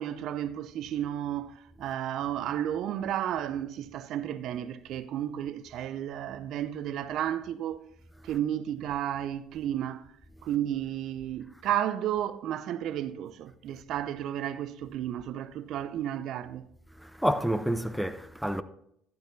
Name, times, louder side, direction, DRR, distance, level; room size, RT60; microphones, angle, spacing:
voice 1, 0.0-7.8 8.2-10.1 10.4-16.7, right 11 dB, 60° right, 0.5 m, -32 dB
voice 2, 17.0-18.6, equal, ahead, 0.7 m, -29 dB
12.0 x 10.5 x 2.7 m
hypercardioid pair, 55°, 0 cm